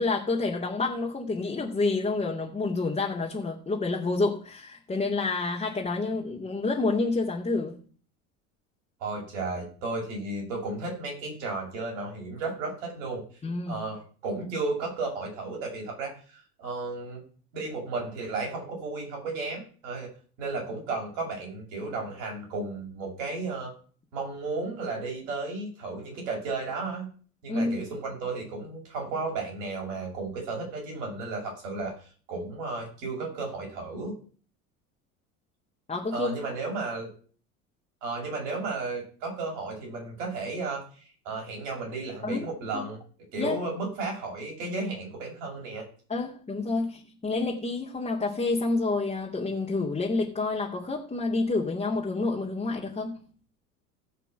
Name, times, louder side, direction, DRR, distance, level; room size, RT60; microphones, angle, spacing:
voice 1, 0.0-7.8 13.4-13.8 27.5-27.8 35.9-36.3 42.2-42.5 42.7-42.9 43.4-43.6 46.1-53.2, left 3 dB, 15° left, 2.4 m, -28 dB
voice 2, 9.0-13.2 13.7-17.2 17.5-20.1 20.4-23.7 24.1-27.1 27.4-34.1 36.1-37.1 38.0-43.0 43.3-45.9, right 3 dB, 60° right, 7.1 m, -34 dB
17.0 x 5.9 x 6.2 m
figure-of-eight pair, 75°, 42 cm